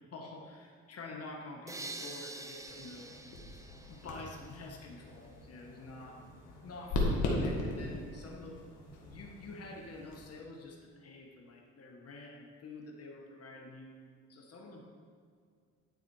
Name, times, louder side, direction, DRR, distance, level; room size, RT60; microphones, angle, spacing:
voice 1, 0.1-3.1 3.9-6.3 6.6-8.6 9.1-14.0 14.3-14.8, left 2 dB, 55° left, 1 dB, 1.1 m, -48 dB
sound 1, 1.7-4.7, right 2 dB, 10° right, 0.6 m, -46 dB
sound 2, 2.6-10.3, left 2 dB, 80° left, 1.6 m, -38 dB
10.5 x 4.1 x 4.7 m, 2.1 s
cardioid pair, 90°, 30 cm